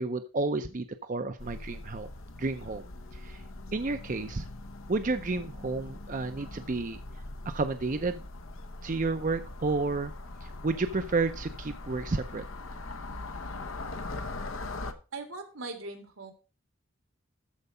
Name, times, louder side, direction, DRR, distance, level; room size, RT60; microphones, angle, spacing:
voice 1, 0.0-2.1 2.4-2.8 3.1-3.4 3.7-4.5 4.9-7.0 7.5-8.2 8.8-10.1 10.4-12.4, right 3 dB, 40° right, 9 dB, 0.6 m, -31 dB
sound 1, 1.4-14.9, left 2 dB, 85° left, 1.0 m, -41 dB
voice 2, 15.1-16.3, right 3 dB, 85° right, 5 dB, 2.4 m, -40 dB
13.5 x 4.7 x 5.4 m, 0.35 s
head